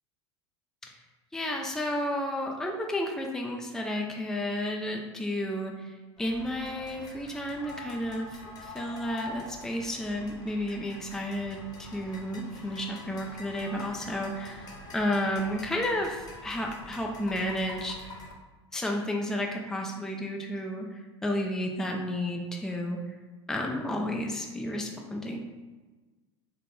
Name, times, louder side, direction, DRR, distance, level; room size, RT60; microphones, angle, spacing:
voice 1, 1.3-14.7 14.9-18.0 18.7-23.0 23.5-25.4, left 1 dB, 5° left, 1 dB, 0.5 m, -32 dB
sound 1, 6.2-18.3, left 2 dB, 25° left, 1.1 m, -45 dB
3.6 x 2.2 x 3.6 m, 1.3 s
hypercardioid pair, 85°, 15 cm